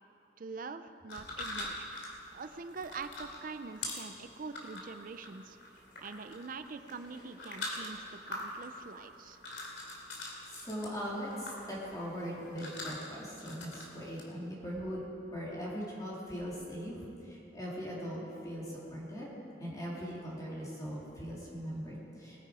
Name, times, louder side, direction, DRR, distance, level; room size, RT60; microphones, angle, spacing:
voice 1, 0.4-1.9 2.3-5.6 6.0-9.4, right 4 dB, 50° right, 10 dB, 0.5 m, -44 dB
sound 1, 1.1-14.2, left 2 dB, 80° left, 2.7 m, -44 dB
voice 2, 10.5-15.0 15.3-22.5, equal, 20° left, -6 dB, 2.9 m, -40 dB
21.0 x 9.6 x 5.0 m, 2.8 s
head